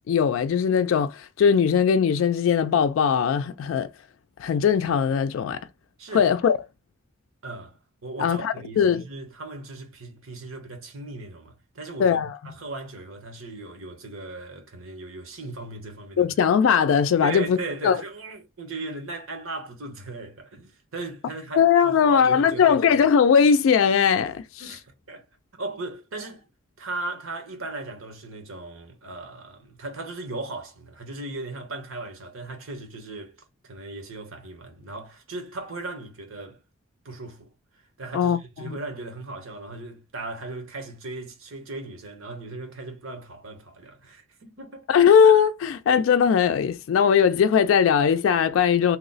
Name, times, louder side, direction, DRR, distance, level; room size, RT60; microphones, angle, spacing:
voice 1, 0.1-3.9 4.4-5.6 6.1-6.5 8.2-9.0 12.0-12.3 16.2-17.6 17.8-18.0 21.6-24.4 38.1-38.4 38.6-38.8 44.9-49.0, left 7 dB, 75° left, 0.3 m, -19 dB
voice 2, 6.0-6.6 7.4-7.8 8.0-16.3 17.2-23.0 24.6-25.2 25.6-26.4 26.8-33.4 33.6-36.6 37.0-37.5 38.0-44.9, right 2 dB, 85° right, 1.0 m, -37 dB
2.9 x 2.0 x 3.8 m
head